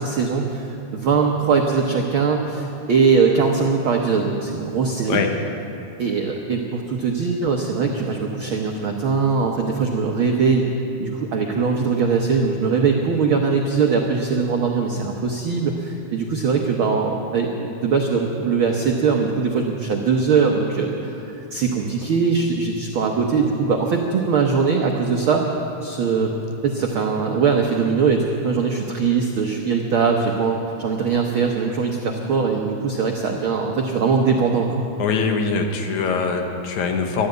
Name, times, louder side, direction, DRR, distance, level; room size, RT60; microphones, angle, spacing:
voice 1, 0.0-5.2 6.0-10.6 11.0-25.4 25.8-26.3 26.6-34.9, right 5 dB, 75° right, 2 dB, 1.2 m, -21 dB
voice 2, 35.0-37.3, left 5 dB, 70° left, 4 dB, 2.4 m, -22 dB
14.5 x 12.0 x 7.9 m, 2.8 s
omnidirectional pair, 3.6 m